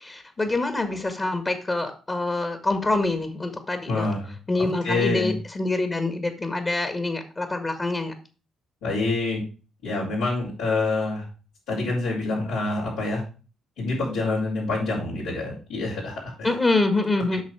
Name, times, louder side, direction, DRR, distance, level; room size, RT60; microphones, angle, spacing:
voice 1, 0.0-4.1 4.5-8.1 16.4-17.4, left 2 dB, 30° left, 7 dB, 1.8 m, -25 dB
voice 2, 3.9-5.3 8.8-9.4 9.8-11.2 11.7-13.2 13.8-16.5, left 3 dB, 80° left, -10 dB, 5.0 m, -27 dB
8.3 x 6.1 x 4.9 m, 0.35 s
hypercardioid pair, 50°, 0 cm